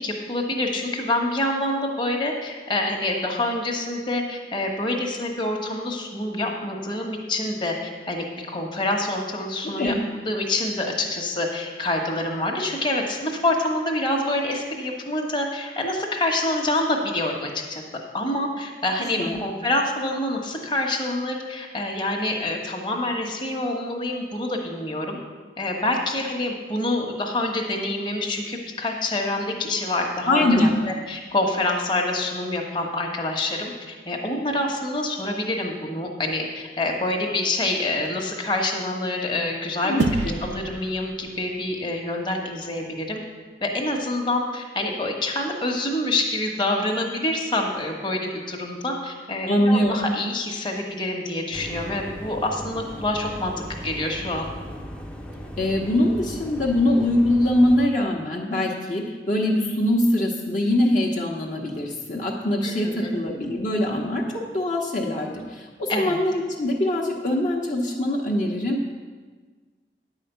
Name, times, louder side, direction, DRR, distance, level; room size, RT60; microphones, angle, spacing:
voice 1, 0.0-7.7 8.0-8.2 8.5-9.9 10.3-17.8 18.1-25.2 25.6-30.6 30.9-40.0 40.4-43.2 43.6-54.4 62.6-63.1 65.9-66.2, left 1 dB, 25° left, 1 dB, 1.2 m, -26 dB
voice 2, 30.3-30.8 39.8-40.4 49.5-50.1 55.6-64.2 64.5-68.9, left 1 dB, 45° left, -2 dB, 1.0 m, -23 dB
sound 1, 40.0-42.6, right 3 dB, 90° right, 0.5 m, -31 dB
sound 2, 51.5-57.8, equal, 5° left, 0.6 m, -37 dB
10.0 x 5.0 x 8.1 m, 1.4 s
head